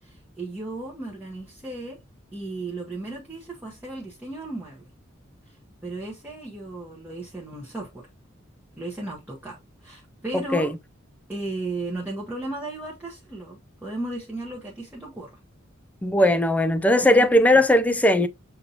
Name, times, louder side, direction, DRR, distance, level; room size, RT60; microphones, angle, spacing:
voice 1, 0.0-2.0 2.3-4.9 5.4-8.0 8.8-10.7 11.3-15.4 17.0-17.7, right 2 dB, 10° right, 0.9 m, -35 dB
voice 2, 16.0-18.3, left 1 dB, 10° left, 0.4 m, -18 dB
6.8 x 2.7 x 2.7 m
head